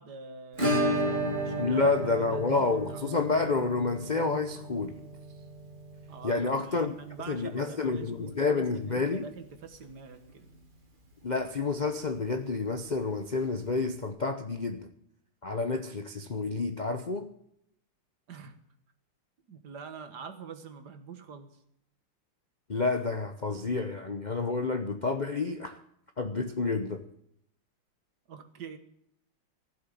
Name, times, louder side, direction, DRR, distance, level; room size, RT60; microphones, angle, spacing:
voice 1, 0.0-1.9 2.3-3.0 6.1-10.5 18.3-18.6 19.5-21.6 28.3-28.8, right 5 dB, 55° right, 1.8 m, -45 dB
Acoustic guitar / Strum, 0.6-9.2 9.4-9.5 9.8-9.9 10.3-10.4 12.4-12.5 13.7-13.8, right 1 dB, 25° right, 2.2 m, -34 dB
voice 2, 1.6-5.0 6.2-6.9 7.3-9.2 11.2-14.9 15.4-17.3 22.7-25.8 26.2-27.0, left 3 dB, 70° left, 0.4 m, -29 dB
15.5 x 7.7 x 9.2 m
omnidirectional pair, 2.3 m